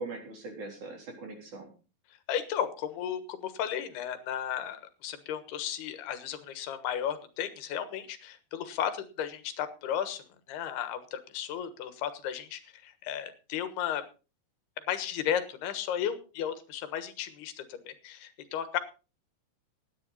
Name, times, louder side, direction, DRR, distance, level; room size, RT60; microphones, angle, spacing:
voice 1, 0.0-1.7, right 3 dB, 50° right, 1 dB, 4.9 m, -41 dB
voice 2, 2.3-14.0 14.9-18.8, left 9 dB, 85° left, 11 dB, 3.5 m, -34 dB
17.0 x 10.5 x 4.1 m, 0.34 s
omnidirectional pair, 4.5 m